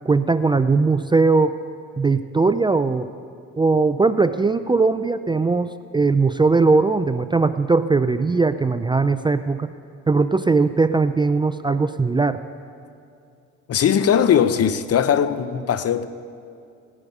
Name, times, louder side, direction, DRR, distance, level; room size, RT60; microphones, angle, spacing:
voice 1, 0.1-1.6 2.0-3.1 3.6-9.7 10.1-12.4, right 4 dB, 15° right, 0.3 m, -19 dB
voice 2, 13.7-16.1, left 8 dB, 55° left, 0.7 m, -19 dB
17.0 x 10.0 x 5.4 m
cardioid pair, 90°, 30 cm